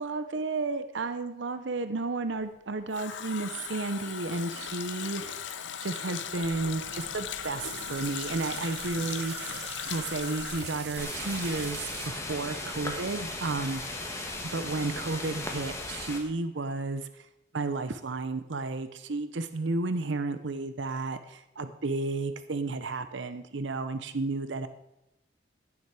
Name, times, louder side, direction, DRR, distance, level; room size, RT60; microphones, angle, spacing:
voice 1, 0.0-5.4 5.8-9.6 9.9-13.8 14.5-17.1 17.5-24.7, right 3 dB, 80° right, 11 dB, 0.8 m, -32 dB
Water tap faucet, 2.4-12.1 12.3-12.4, left 8 dB, 80° left, 0.8 m, -39 dB
sound 1, 6.3-12.1, right 5 dB, 65° right, 2.3 m, -42 dB
sound 2, 11.0-16.2, left 2 dB, 15° left, 1.6 m, -37 dB
16.0 x 7.3 x 4.8 m, 0.88 s
head